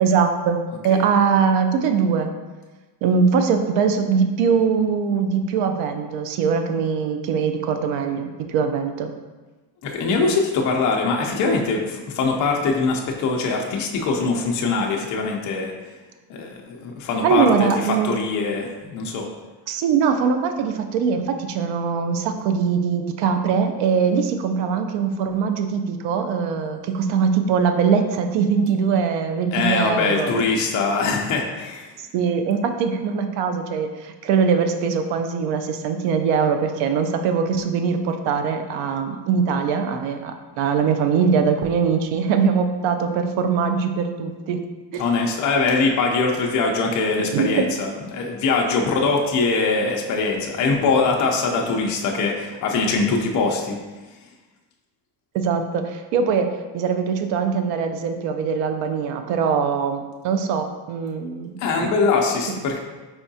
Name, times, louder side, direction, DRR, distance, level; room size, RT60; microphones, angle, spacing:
voice 1, 0.0-2.3 3.0-9.1 17.2-18.2 19.7-30.5 32.1-44.6 44.9-45.0 47.3-47.7 55.3-56.5 56.7-61.6, right 6 dB, 85° right, 6 dB, 0.6 m, -22 dB
voice 2, 9.8-15.7 16.3-19.3 29.5-31.9 45.0-53.8 61.6-62.8, left 4 dB, 40° left, 0 dB, 0.5 m, -22 dB
4.6 x 3.5 x 2.7 m, 1.2 s
cardioid pair, 150°, 44 cm